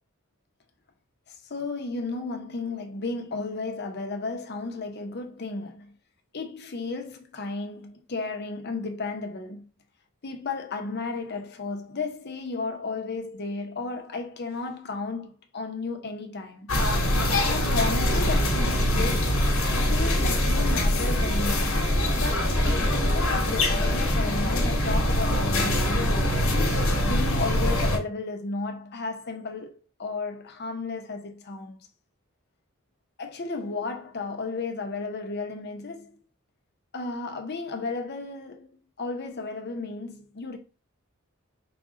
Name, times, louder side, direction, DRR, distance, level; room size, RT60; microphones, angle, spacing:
voice 1, 1.3-5.9 6.3-9.6 10.2-16.7 17.3-19.4 19.7-21.8 22.1-26.2 27.0-31.8 33.2-36.2 36.9-40.6, left 3 dB, 50° left, 0.8 m, -33 dB
sound 1, 16.7-28.0, left 1 dB, 75° left, 1.2 m, -23 dB
5.0 x 2.3 x 3.6 m
head